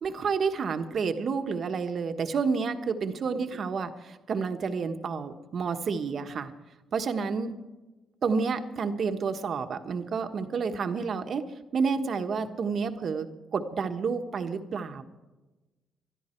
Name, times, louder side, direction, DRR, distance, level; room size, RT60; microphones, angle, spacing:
voice 1, 0.0-6.5 6.9-7.5 8.2-11.4 11.7-13.3 13.5-15.0, right 5 dB, 55° right, 7 dB, 1.3 m, -29 dB
20.5 x 13.0 x 4.5 m, 1.1 s
cardioid pair, 90°, 0 cm